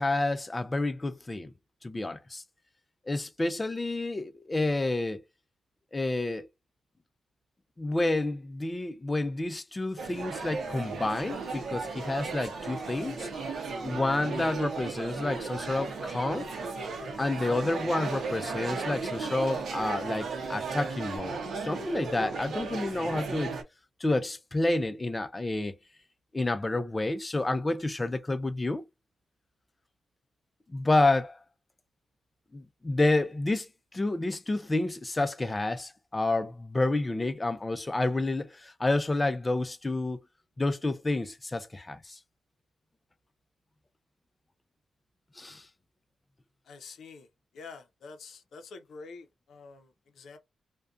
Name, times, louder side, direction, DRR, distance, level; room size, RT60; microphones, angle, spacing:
voice 1, 0.0-1.5 1.8-2.4 3.1-5.2 5.9-6.5 7.8-13.3 13.8-16.5 17.2-23.6 24.0-25.8 26.3-28.9 30.7-31.4 32.5-40.2 40.6-42.2 45.4-45.7, left 2 dB, 20° left, 0.4 m, -29 dB
sound 1, 10.0-23.6, right 4 dB, 70° right, 0.6 m, -36 dB
Alarm, 10.3-21.2, equal, 15° right, 1.0 m, -46 dB
voice 2, 46.7-47.3 47.5-50.4, left 4 dB, 75° left, 0.6 m, -47 dB
2.5 x 2.1 x 2.3 m
cardioid pair, 80°, 0 cm